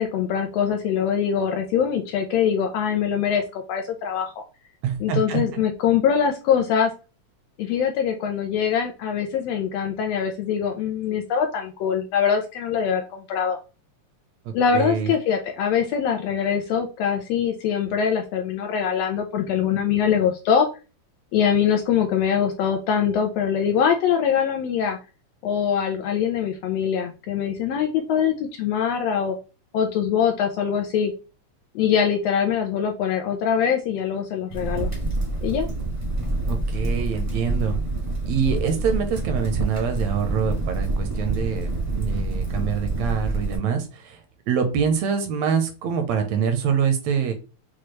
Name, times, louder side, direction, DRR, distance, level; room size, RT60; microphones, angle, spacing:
voice 1, 0.0-4.4 5.0-6.9 7.6-13.6 14.5-20.7 21.3-25.0 25.4-29.4 29.7-31.1 31.7-34.9 35.4-35.7, left 8 dB, 80° left, 4 dB, 1.5 m, -23 dB
voice 2, 4.8-5.4 14.5-15.1 36.5-37.8 38.3-41.7 41.9-44.2 44.5-47.3, right 7 dB, 80° right, 7 dB, 1.8 m, -25 dB
Crackle, 34.5-43.6, right 2 dB, 25° right, 0.7 m, -27 dB
6.1 x 2.3 x 3.1 m, 0.32 s
omnidirectional pair, 3.3 m